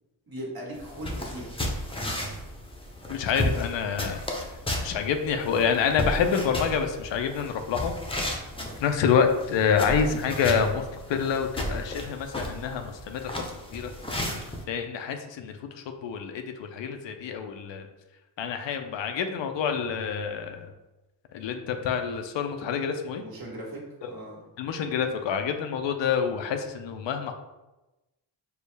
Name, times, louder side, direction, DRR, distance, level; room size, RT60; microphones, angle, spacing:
voice 1, 0.3-1.5 8.6-8.8 23.1-24.4, right 1 dB, 50° right, -3 dB, 1.4 m, -39 dB
sound 1, 0.8-14.6, equal, 10° left, 0.7 m, -34 dB
voice 2, 3.1-4.2 4.8-7.9 8.8-10.8 11.1-13.3 13.7-13.9 14.7-17.9 18.4-20.7 21.3-23.2 24.0-24.1 24.6-27.3, left 7 dB, 70° left, 6 dB, 0.6 m, -27 dB
4.5 x 2.0 x 3.3 m, 1.0 s
cardioid pair, 60°, 46 cm